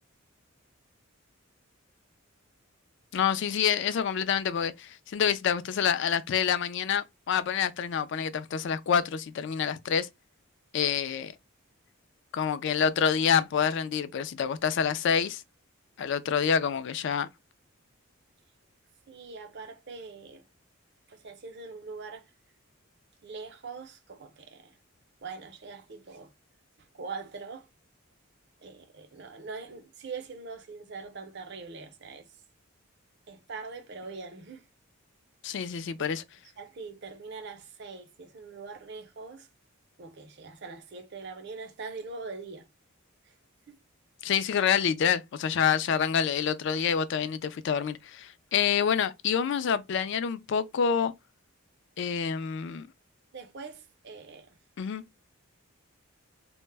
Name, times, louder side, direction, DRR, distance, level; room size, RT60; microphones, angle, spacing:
voice 1, 3.1-10.1 10.7-11.3 12.3-15.4 16.0-17.3 35.4-36.2 44.2-51.1 52.0-52.9 54.8-55.0, left 7 dB, 55° left, 0.3 m, -27 dB
voice 2, 19.1-20.5 21.1-22.3 23.2-24.8 25.2-26.3 26.8-27.7 28.6-32.3 33.3-34.7 36.0-36.1 36.6-39.5 40.0-42.7 43.2-43.3 43.7-43.8 53.3-54.6, right 4 dB, 50° right, 0.5 m, -42 dB
2.1 x 2.0 x 3.2 m
head